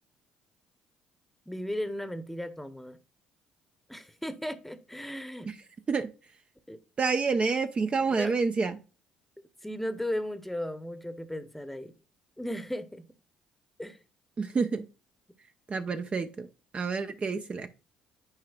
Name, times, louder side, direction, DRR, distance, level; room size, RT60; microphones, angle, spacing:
voice 1, 1.5-3.0 3.9-5.5 6.7-6.8 8.1-8.3 9.6-11.9 12.4-13.1 13.8-14.0, left 1 dB, 5° left, 0.9 m, -36 dB
voice 2, 7.0-8.8 14.4-14.8 15.7-16.5 16.7-17.7, right 4 dB, 35° right, 0.5 m, -28 dB
9.6 x 4.7 x 2.3 m
hypercardioid pair, 55°, 3 cm